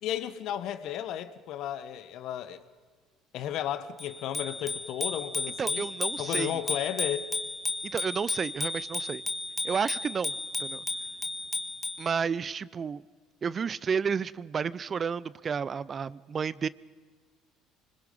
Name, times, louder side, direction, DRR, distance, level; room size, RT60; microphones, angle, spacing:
voice 1, 0.0-2.6 3.3-5.9 6.2-7.3, left 11 dB, 65° left, 1.2 m, -34 dB
Bicycle bell, 4.0-12.1, left 3 dB, 15° left, 1.6 m, -33 dB
voice 2, 5.6-6.6 7.9-9.2 9.6-10.8 12.0-13.0 13.4-16.7, right 6 dB, 40° right, 0.5 m, -31 dB
25.5 x 21.0 x 5.5 m
hypercardioid pair, 75°, 0 cm